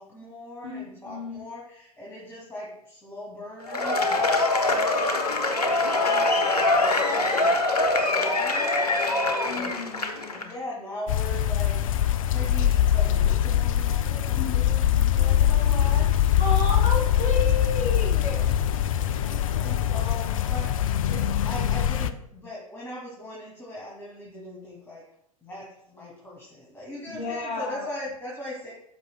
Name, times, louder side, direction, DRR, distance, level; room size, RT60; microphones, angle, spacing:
voice 1, 0.0-4.4 4.6-5.4 5.7-7.5 7.9-9.7 10.3-12.0 12.3-16.2 16.8-16.9 19.2-25.0 25.4-28.7, left 1 dB, 10° left, -5 dB, 2.4 m, -40 dB
voice 2, 0.6-1.4 9.4-10.4 14.3-15.0 16.4-18.5 27.1-27.9, left 2 dB, 35° left, -1 dB, 3.4 m, -32 dB
Cheering / Applause / Crowd, 3.6-10.4, left 2 dB, 85° left, 1.1 m, -23 dB
sound 1, 11.1-22.1, left 11 dB, 60° left, 0.5 m, -23 dB
13.5 x 6.2 x 2.2 m, 0.73 s
figure-of-eight pair, 95°, 19 cm